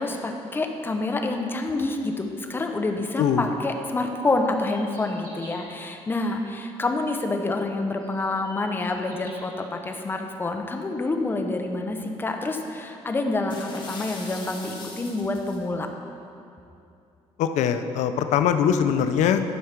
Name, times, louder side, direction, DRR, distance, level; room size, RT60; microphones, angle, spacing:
voice 1, 0.0-15.9, left 2 dB, 20° left, 4 dB, 0.7 m, -27 dB
voice 2, 3.2-3.5 17.4-19.4, left 8 dB, 80° left, 9 dB, 0.5 m, -22 dB
sound 1, 4.4-5.7 7.4-7.5 8.0-9.4, equal, 25° right, 1.9 m, -47 dB
sound 2, 13.5-15.6, left 3 dB, 40° left, 1.4 m, -41 dB
11.0 x 4.7 x 5.8 m, 2.6 s
cardioid pair, 130°, 12 cm